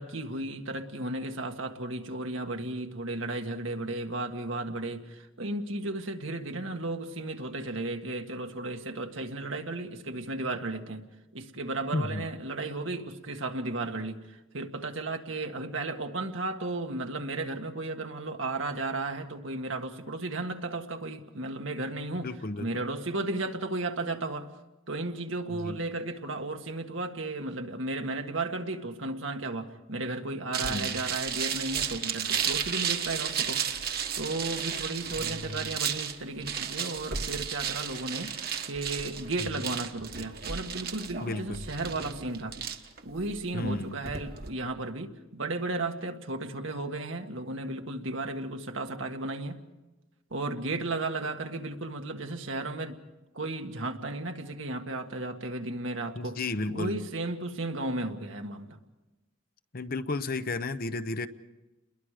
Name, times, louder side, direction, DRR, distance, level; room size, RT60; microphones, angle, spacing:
voice 1, 0.0-22.3 22.6-24.5 24.9-33.8 34.2-38.4 38.7-42.6 43.0-49.6 50.3-53.0 53.3-56.4 56.7-58.8, right 2 dB, 75° right, 4 dB, 1.8 m, -34 dB
voice 2, 11.9-12.3 22.2-22.7 25.5-25.8 30.6-31.0 35.2-35.6 39.4-39.6 41.2-41.7 43.5-44.0 56.1-57.0 59.7-61.3, left 2 dB, 45° left, 11 dB, 0.8 m, -33 dB
sound 1, 30.5-44.5, right 7 dB, 50° right, 1.4 m, -33 dB
30.0 x 22.0 x 5.0 m, 1.1 s
head